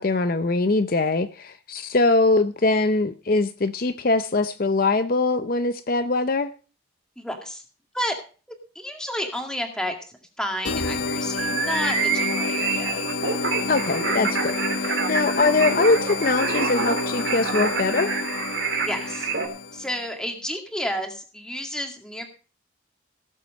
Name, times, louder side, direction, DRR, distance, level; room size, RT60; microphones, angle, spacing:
voice 1, 0.0-6.5 13.7-18.1, left 3 dB, 45° left, 10 dB, 0.6 m, -22 dB
voice 2, 7.2-7.6 7.9-8.1 8.8-13.0 18.7-19.3 19.7-22.3, equal, 5° left, 3 dB, 2.1 m, -31 dB
sound 1, 10.6-20.0, left 3 dB, 75° left, 1.1 m, -29 dB
sound 2, 11.4-19.5, right 5 dB, 65° right, 3.0 m, -27 dB
17.5 x 7.5 x 5.3 m, 0.37 s
head